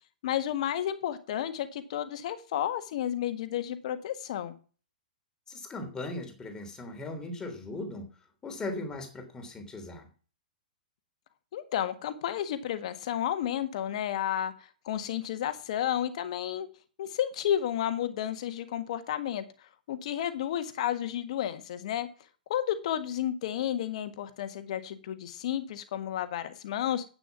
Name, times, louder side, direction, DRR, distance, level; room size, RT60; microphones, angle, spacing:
voice 1, 0.2-4.5 11.5-14.5 14.8-16.7 17.0-19.4 19.9-22.1 22.5-27.0, left 10 dB, 50° left, 10 dB, 1.6 m, -31 dB
voice 2, 5.5-8.1 8.4-10.1, left 2 dB, 15° left, 5 dB, 3.2 m, -38 dB
10.5 x 9.0 x 6.0 m, 0.38 s
figure-of-eight pair, 110°, 5 cm